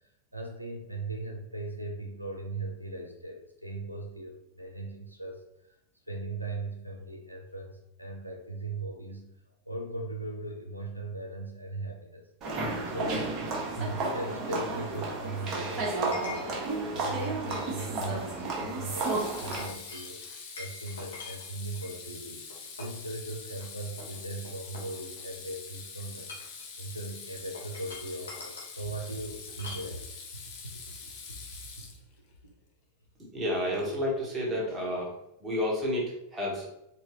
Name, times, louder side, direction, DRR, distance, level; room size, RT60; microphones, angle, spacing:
voice 1, 0.3-5.7 6.1-9.3 9.6-12.3 12.9-13.3 13.8-16.5 16.9-30.1 30.6-31.4, right 2 dB, 90° right, 1 dB, 0.7 m, -39 dB
sound 1, 12.4-19.7, right 3 dB, 30° right, 1.2 m, -32 dB
Chink clink, 16.1-16.6 17.1-17.9 18.2-18.5 19.2-21.9 22.5-23.0 23.5-23.7 24.0-25.4 26.1-26.6 27.5-28.7 29.6-29.9, left 3 dB, 70° left, 1.2 m, -45 dB
Water tap faucet / Sink (filling or washing), 17.5-17.6 18.9-32.3, left 5 dB, 45° left, 0.9 m, -45 dB
voice 2, 33.3-35.1 35.4-36.7, left 1 dB, 15° right, -4 dB, 1.5 m, -30 dB
4.3 x 3.0 x 3.0 m, 0.83 s
figure-of-eight pair, 90°, 0 cm